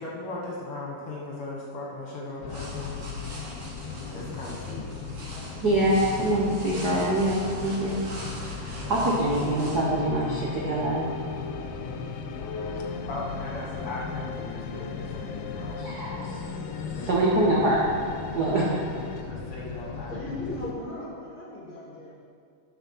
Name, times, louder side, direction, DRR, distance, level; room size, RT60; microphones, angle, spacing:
voice 1, 0.0-3.0 4.1-4.9 8.3-8.9 11.8-12.2 13.1-15.8 16.8-17.6 19.3-20.1, left 2 dB, 55° left, -4 dB, 1.9 m, -38 dB
sound 1, 2.4-20.7, left 5 dB, 70° left, 1.6 m, -37 dB
sound 2, 2.5-9.8, right 1 dB, 40° right, 1.4 m, -43 dB
voice 2, 5.6-8.0 8.5-11.1 15.8-16.4 17.1-17.9 18.3-18.7, right 1 dB, 80° right, -5 dB, 0.9 m, -24 dB
sound 3, 9.0-19.2, left 5 dB, 90° left, 2.3 m, -40 dB
voice 3, 20.1-22.2, left 1 dB, 20° left, -5 dB, 1.5 m, -37 dB
10.0 x 5.9 x 5.6 m, 2.3 s
omnidirectional pair, 3.7 m